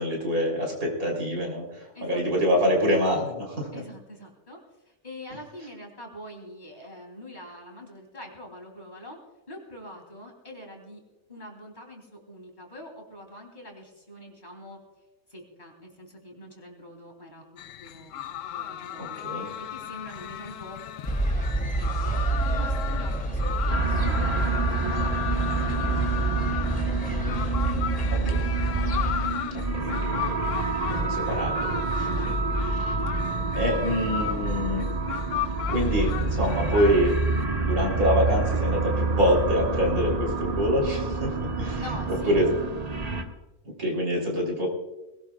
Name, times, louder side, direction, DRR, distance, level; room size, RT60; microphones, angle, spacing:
voice 1, 0.0-3.7 19.0-19.5 28.1-28.5 29.5-30.4 30.9-32.1 32.6-33.0 33.6-34.9 35.7-37.2 37.6-42.5 43.6-44.7, equal, 75° right, -1 dB, 4.0 m, -26 dB
voice 2, 1.9-2.2 3.7-4.6 4.9-9.2 9.5-11.0 11.3-14.8 15.3-18.2 18.5-20.8 21.4-26.7 28.1-28.2 29.5-30.1 32.0-33.5 41.8-42.4, left 1 dB, 30° left, 0 dB, 3.5 m, -44 dB
sound 1, 17.6-37.4, left 11 dB, 70° left, 0.9 m, -35 dB
sound 2, 21.1-29.3, right 3 dB, 5° left, 2.7 m, -27 dB
sound 3, 23.7-43.2, right 3 dB, 30° right, 1.2 m, -28 dB
21.0 x 18.0 x 2.4 m, 1.0 s
omnidirectional pair, 1.5 m